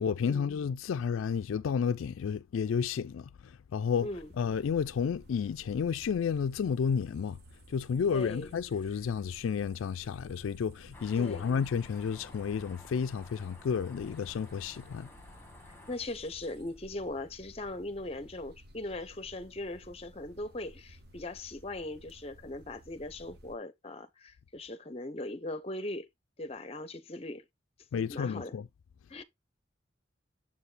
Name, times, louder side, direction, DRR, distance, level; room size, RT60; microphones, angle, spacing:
voice 1, 0.0-4.1 4.4-7.4 7.7-15.1 27.9-28.7, left 6 dB, 85° left, 0.3 m, -31 dB
sound 1, 3.9-23.6, equal, 55° right, 1.2 m, -55 dB
voice 2, 4.0-4.3 8.1-8.5 11.2-11.5 15.9-26.1 26.4-27.4 27.9-28.6 29.1-29.2, left 2 dB, 30° left, 0.6 m, -39 dB
sound 2, 10.9-16.0, left 2 dB, 10° left, 1.3 m, -53 dB
7.2 x 4.6 x 3.2 m
head